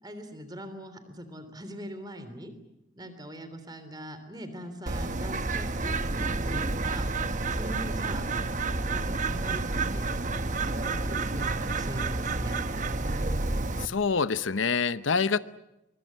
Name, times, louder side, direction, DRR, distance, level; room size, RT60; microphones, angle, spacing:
voice 1, 0.0-2.5 3.0-7.1 7.5-8.3 8.9-10.1 10.6-12.6, equal, 20° right, 3.3 m, -41 dB
Bird, 4.9-13.9, right 3 dB, 40° right, 1.1 m, -30 dB
voice 2, 13.8-15.4, left 5 dB, 80° left, 0.8 m, -26 dB
23.5 x 23.5 x 8.6 m
head